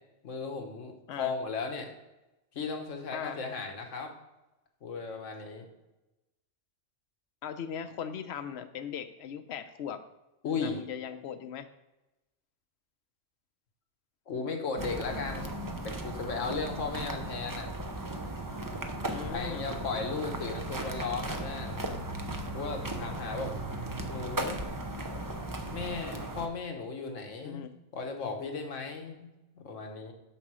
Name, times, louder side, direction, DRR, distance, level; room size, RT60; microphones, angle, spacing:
voice 1, 0.2-0.9 1.2-1.9 2.5-4.1 4.8-5.7 10.4-10.8 14.3-15.5 15.8-17.7 19.3-21.9 22.5-23.5 24.1-24.7 25.7-27.7 27.9-29.3 29.5-30.1, left 4 dB, 85° left, 3 dB, 1.5 m, -36 dB
voice 2, 7.4-10.0 10.6-11.7 19.1-19.6 27.4-27.7, left 8 dB, 65° left, 10 dB, 0.9 m, -39 dB
sound 1, 14.8-26.5, right 1 dB, 25° right, 0.5 m, -36 dB
9.1 x 3.8 x 6.2 m, 1.0 s
omnidirectional pair, 1.2 m